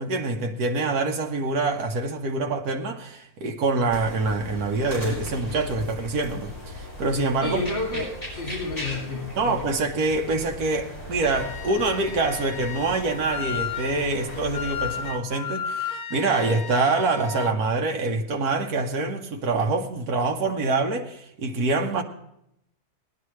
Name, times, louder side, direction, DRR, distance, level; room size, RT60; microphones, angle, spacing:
voice 1, 0.0-7.6 9.4-22.0, right 3 dB, 80° right, 1.5 m, -25 dB
sound 1, 3.9-15.1, left 2 dB, 10° left, 5.1 m, -38 dB
voice 2, 7.4-9.6, left 2 dB, 35° left, 2.3 m, -30 dB
Wind instrument woodwind instrument, 11.2-17.6, left 8 dB, 85° left, 1.2 m, -34 dB
18.5 x 11.0 x 3.2 m
omnidirectional pair, 1.6 m